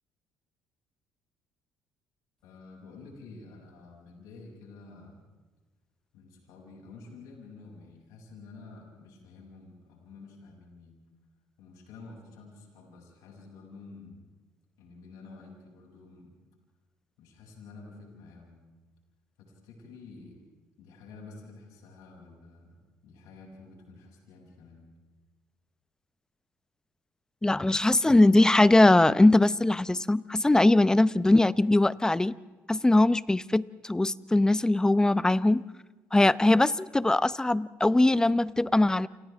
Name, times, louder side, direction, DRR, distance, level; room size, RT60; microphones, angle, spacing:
voice 1, 2.4-5.2 6.1-11.0 11.6-14.3 14.8-16.4 17.2-18.6 19.4-20.4 20.8-24.9, left 3 dB, 85° left, -1 dB, 7.2 m, -49 dB
voice 2, 27.4-32.4 32.7-35.6 36.1-39.1, left 2 dB, 10° left, 17 dB, 0.7 m, -21 dB
29.0 x 28.0 x 3.6 m, 1.2 s
supercardioid pair, 85°, 6 cm